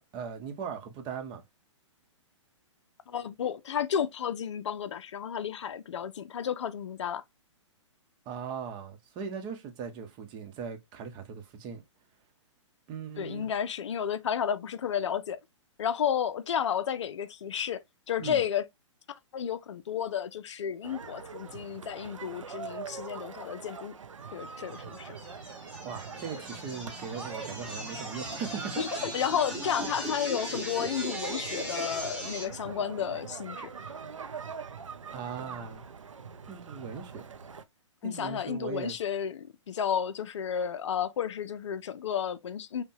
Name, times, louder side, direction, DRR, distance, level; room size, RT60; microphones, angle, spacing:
voice 1, 0.0-1.4 8.3-11.8 12.9-13.5 18.2-18.4 25.8-28.8 35.1-35.9 36.5-37.2 38.0-39.0, right 6 dB, 30° right, 0.9 m, -39 dB
voice 2, 3.1-7.2 13.2-15.4 15.8-17.8 18.1-18.7 19.1-23.9 24.3-25.2 28.8-33.9 38.0-42.8, left 8 dB, 65° left, 0.5 m, -32 dB
sound 1, 20.8-37.6, right 5 dB, 85° right, 0.5 m, -43 dB
sound 2, 24.7-32.4, equal, 5° right, 1.7 m, -38 dB
5.2 x 2.2 x 2.7 m
figure-of-eight pair, 120°, 16 cm